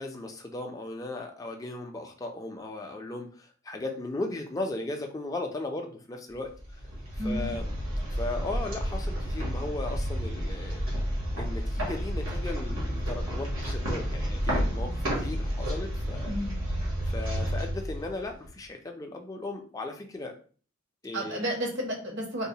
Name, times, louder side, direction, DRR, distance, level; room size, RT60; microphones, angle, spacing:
voice 1, 0.0-6.5 7.2-7.7 8.1-10.9 11.4-16.4 17.0-20.4 21.0-21.4, left 2 dB, 15° left, 3 dB, 0.4 m, -37 dB
sound 1, 6.5-18.6, equal, 75° right, 1.2 m, -31 dB
voice 2, 7.2-7.5 16.3-16.5 21.1-22.5, equal, 60° right, 0 dB, 0.9 m, -32 dB
3.8 x 2.0 x 2.7 m, 0.40 s
head